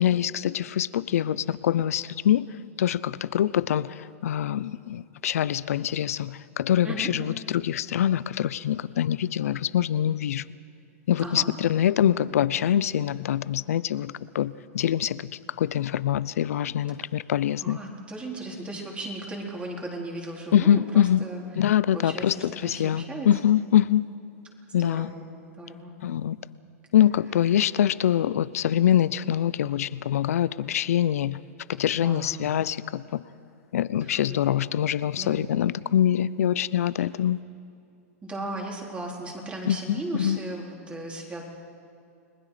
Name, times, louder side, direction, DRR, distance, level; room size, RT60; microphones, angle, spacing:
voice 1, 0.0-2.5 2.8-10.4 11.1-15.3 15.6-17.8 20.5-21.2 21.6-24.0 24.7-25.1 26.0-26.4 26.9-31.4 31.8-33.2 33.7-37.4 39.7-40.4, left 10 dB, 80° left, 18 dB, 0.7 m, -24 dB
voice 2, 11.2-11.5 17.6-21.4 21.9-23.3 24.8-25.2 25.6-25.9 31.9-32.4 34.0-34.4 35.2-35.4 37.0-37.1 38.2-41.4, right 2 dB, 15° right, -1 dB, 4.1 m, -36 dB
30.0 x 20.0 x 5.1 m, 2.6 s
hypercardioid pair, 125°, 8 cm